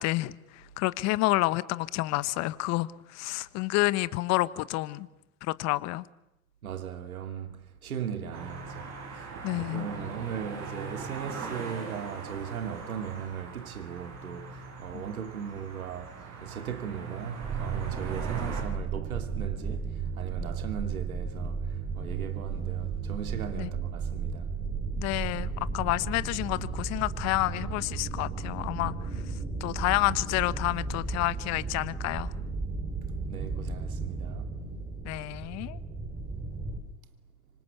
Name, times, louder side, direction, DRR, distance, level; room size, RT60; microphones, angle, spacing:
voice 1, 0.0-5.1 5.4-6.1 9.4-9.9 14.9-15.0 23.5-23.7 25.0-28.9 29.6-32.3 35.0-35.8, left 19 dB, 40° left, 1.2 m, -29 dB
voice 2, 6.6-24.6 33.3-34.6, right 8 dB, 80° right, 2.7 m, -38 dB
sound 1, 8.3-18.6, right 5 dB, 40° right, 7.6 m, -40 dB
sound 2, 17.4-36.8, right 5 dB, 15° right, 4.0 m, -34 dB
26.0 x 25.5 x 8.2 m
hypercardioid pair, 105°, 42 cm